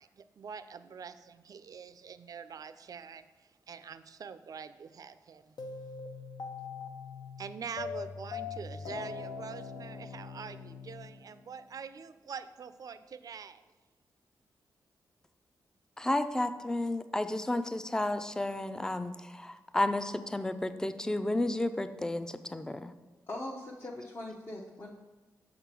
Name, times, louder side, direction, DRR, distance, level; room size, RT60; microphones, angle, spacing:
voice 1, 0.0-5.5 7.4-13.6, right 6 dB, 55° right, 12 dB, 0.4 m, -45 dB
sound 1, 5.6-11.7, left 5 dB, 70° left, 0.7 m, -42 dB
voice 2, 16.0-22.9, left 1 dB, 10° left, 11 dB, 0.4 m, -32 dB
voice 3, 23.3-24.9, left 1 dB, 35° left, -3 dB, 0.7 m, -41 dB
6.6 x 3.7 x 5.9 m, 1.2 s
cardioid pair, 80°, 7 cm